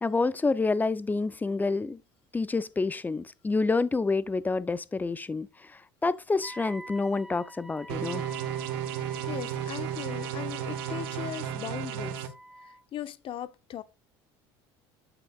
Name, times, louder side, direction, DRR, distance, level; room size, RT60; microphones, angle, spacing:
voice 1, 0.0-2.0 2.3-5.5 6.0-8.2, left 3 dB, 15° left, 0.5 m, -28 dB
Wind instrument woodwind instrument, 6.4-12.8, equal, ahead, 1.0 m, -47 dB
sound 1, 7.9-12.3, right 10 dB, 85° right, 1.1 m, -33 dB
voice 2, 8.8-12.3 12.6-13.8, left 11 dB, 50° left, 0.8 m, -39 dB
8.8 x 7.0 x 2.4 m
supercardioid pair, 95°, 12 cm